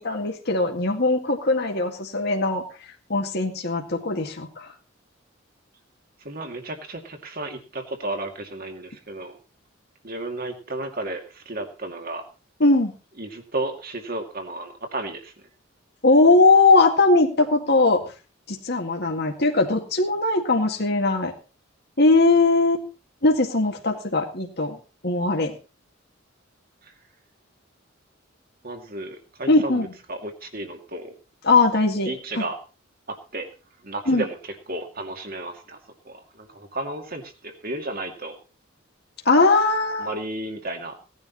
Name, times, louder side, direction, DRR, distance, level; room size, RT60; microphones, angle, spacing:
voice 1, 0.0-2.6 3.1-4.7 12.6-12.9 16.0-18.0 18.5-21.3 22.0-22.8 23.2-25.5 29.5-29.9 31.4-32.4 34.1-34.2 39.3-40.2, left 3 dB, 50° left, 2 dB, 2.0 m, -20 dB
voice 2, 6.2-9.4 10.0-12.2 13.2-15.3 26.8-26.9 28.6-29.8 30.1-31.1 32.1-32.6 33.1-33.5 33.8-34.4 34.7-35.8 36.0-38.4 40.0-40.9, right 2 dB, 45° right, 4 dB, 2.4 m, -33 dB
18.0 x 10.5 x 4.1 m, 0.34 s
head